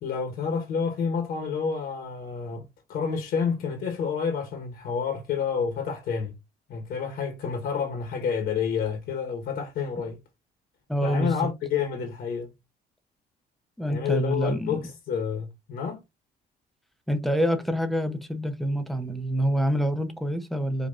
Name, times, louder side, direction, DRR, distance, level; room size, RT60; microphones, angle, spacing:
voice 1, 0.0-2.6 2.9-6.3 6.7-10.2 11.0-12.5 13.9-16.0, left 6 dB, 65° left, 1.2 m, -29 dB
voice 2, 10.9-11.3 13.8-14.8 17.1-20.9, equal, ahead, 0.7 m, -26 dB
5.0 x 2.6 x 2.5 m
cardioid pair, 110°, 17 cm